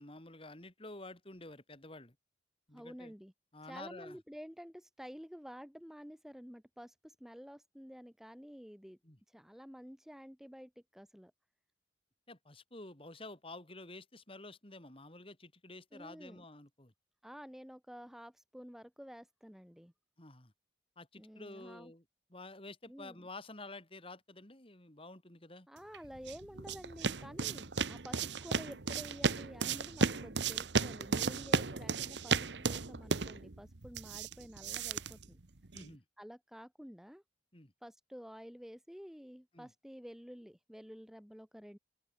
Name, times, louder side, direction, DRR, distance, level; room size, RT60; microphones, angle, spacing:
voice 1, 0.0-2.1 2.7-3.1 3.5-4.2 9.0-9.2 12.3-16.9 20.2-20.5 21.0-22.0 22.3-25.7 35.7-36.0 37.5-37.7 39.5-39.7, left 2 dB, 30° left, 3.2 m, -50 dB
voice 2, 2.7-3.3 3.6-9.0 9.3-11.3 15.9-16.4 17.2-19.9 21.2-21.9 22.9-23.3 25.7-35.4 36.2-37.2 37.8-41.8, equal, ahead, 1.0 m, -50 dB
sound 1, 25.9-36.0, right 4 dB, 75° right, 1.3 m, -35 dB
open air
head